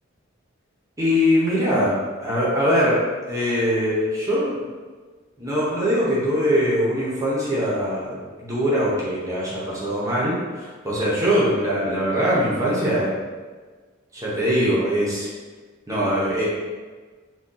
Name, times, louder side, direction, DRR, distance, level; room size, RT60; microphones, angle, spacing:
voice 1, 1.0-3.0 3.3-4.7 5.4-13.1 14.1-15.3 15.9-16.5, equal, 15° right, -7 dB, 0.7 m, -22 dB
2.6 x 2.3 x 3.7 m, 1.4 s
head